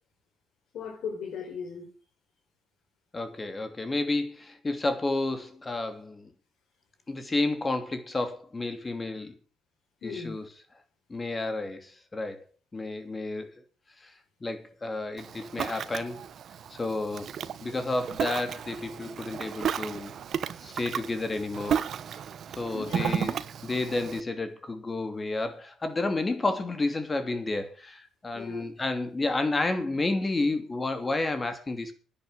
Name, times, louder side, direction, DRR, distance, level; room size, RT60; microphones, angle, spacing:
voice 1, 0.7-1.9 10.0-10.4 22.7-23.1 28.3-28.7, left 6 dB, 65° left, 5.1 m, -37 dB
voice 2, 3.1-6.3 7.1-9.4 10.0-10.5 11.1-12.4 12.7-13.5 14.0-14.1 14.4-16.2 16.7-20.1 20.6-21.8 22.6-23.4 23.6-31.9, left 2 dB, 25° left, 2.8 m, -31 dB
Ocean, 15.2-24.2, right 8 dB, 55° right, 1.0 m, -34 dB
10.5 x 9.5 x 8.1 m
cardioid pair, 90°, 0 cm